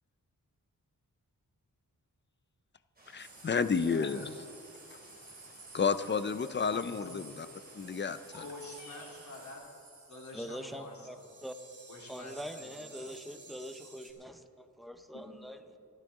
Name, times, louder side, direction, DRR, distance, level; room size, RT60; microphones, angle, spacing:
sound 1, 3.0-9.6, right 1 dB, 25° right, 3.1 m, -58 dB
voice 1, 3.1-4.3 5.7-7.5 7.7-8.4, left 5 dB, 30° left, 13 dB, 0.5 m, -31 dB
sound 2, 3.2-14.1, right 3 dB, 45° right, 2.6 m, -53 dB
voice 2, 3.8-4.2 7.0-7.3 8.4-9.6 10.1-11.2 11.9-12.7 15.1-15.3, left 2 dB, 55° left, -2 dB, 3.3 m, -47 dB
sound 3, 8.2-9.4, left 2 dB, 80° left, 2.7 m, -52 dB
voice 3, 10.3-11.2 11.4-11.6 12.1-15.8, equal, ahead, 7 dB, 0.8 m, -44 dB
26.5 x 9.9 x 3.7 m, 2.5 s
wide cardioid pair, 115°, 35 cm